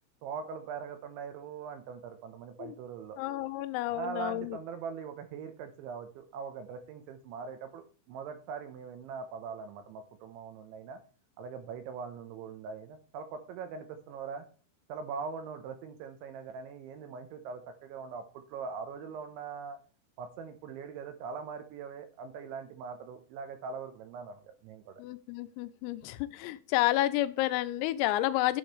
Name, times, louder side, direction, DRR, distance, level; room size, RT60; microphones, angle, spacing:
voice 1, 0.2-3.2 3.9-11.0 11.4-14.5 14.9-19.8 20.2-25.0, right 6 dB, 80° right, 8 dB, 3.1 m, -41 dB
voice 2, 3.2-4.6 25.0-28.6, left 16 dB, 90° left, 13 dB, 3.3 m, -30 dB
11.0 x 7.8 x 3.2 m, 0.37 s
omnidirectional pair, 5.9 m